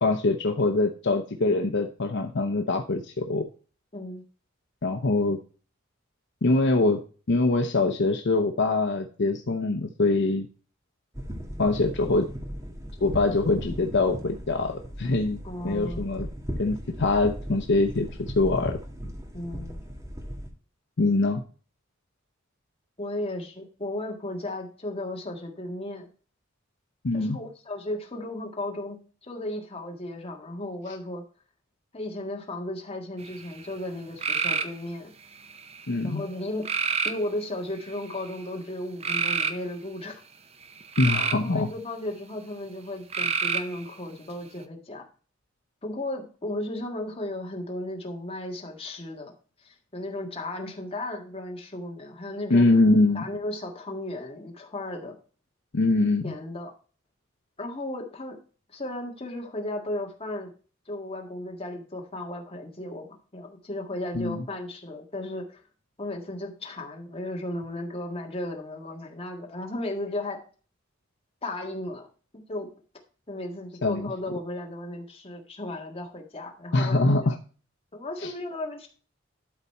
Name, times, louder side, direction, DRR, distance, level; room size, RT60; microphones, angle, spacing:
voice 1, 0.0-3.5 4.8-5.4 6.4-7.0 7.3-10.5 11.6-12.3 13.0-15.4 15.6-16.3 16.6-18.8 21.0-21.4 27.0-27.4 35.9-36.2 41.0-41.7 52.5-53.3 55.7-56.3 64.1-64.4 73.8-74.1 76.7-77.4 78.2-78.3, left 2 dB, 60° left, 5 dB, 0.7 m, -23 dB
voice 2, 3.9-4.2 15.4-16.1 19.3-19.8 23.0-26.1 27.1-31.2 31.9-35.1 36.0-40.2 41.3-45.0 45.8-49.3 49.6-52.7 53.1-55.1 56.2-56.7 57.6-58.4 58.7-60.5 60.9-65.6 66.0-70.4 71.4-72.1 72.5-72.7 73.3-77.3 77.9-78.9, left 1 dB, 30° left, 1 dB, 1.7 m, -35 dB
sound 1, 11.1-20.5, equal, 15° right, 1.7 m, -37 dB
sound 2, 33.2-33.7 34.2-34.8 35.4-35.9 36.6-37.2 37.9-38.3 39.0-39.5 40.6-41.5 43.1-43.8, right 5 dB, 30° right, 0.7 m, -27 dB
12.0 x 4.1 x 4.4 m, 0.38 s
head